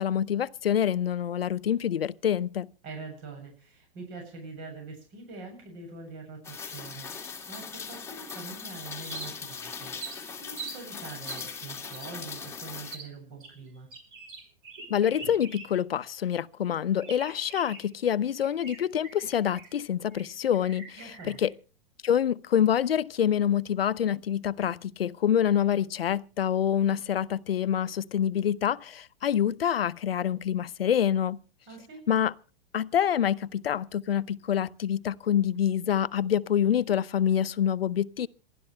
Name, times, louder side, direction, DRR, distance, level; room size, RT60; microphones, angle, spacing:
voice 1, 0.0-2.7 14.9-21.5 22.0-31.4 32.1-32.3 32.7-38.3, left 9 dB, 85° left, 0.8 m, -26 dB
voice 2, 2.8-13.9 21.0-21.4 31.7-32.0, right 4 dB, 40° right, 8.0 m, -44 dB
Rain, 6.4-13.0, left 5 dB, 10° left, 2.1 m, -40 dB
sound 1, 9.0-9.6 10.0-10.8 11.3-11.5 11.9-12.1 12.9-13.1 13.4-15.9 16.2-16.3 17.0-17.9 18.4-19.8 20.1-20.3 20.5-21.5, right 4 dB, 60° right, 5.9 m, -43 dB
27.0 x 12.0 x 3.3 m
hypercardioid pair, 115°, 29 cm